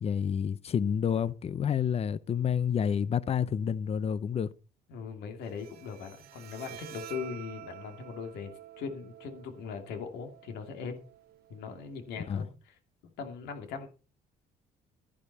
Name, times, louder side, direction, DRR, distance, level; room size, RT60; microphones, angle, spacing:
voice 1, 0.0-4.5 12.3-12.4, left 8 dB, 35° left, 0.7 m, -29 dB
voice 2, 4.9-11.0 11.5-13.9, left 6 dB, 80° left, 2.6 m, -40 dB
Bowed string instrument, 5.4-12.4, right 13 dB, 70° right, 1.0 m, -49 dB
12.5 x 10.5 x 4.2 m
cardioid pair, 110°, 17 cm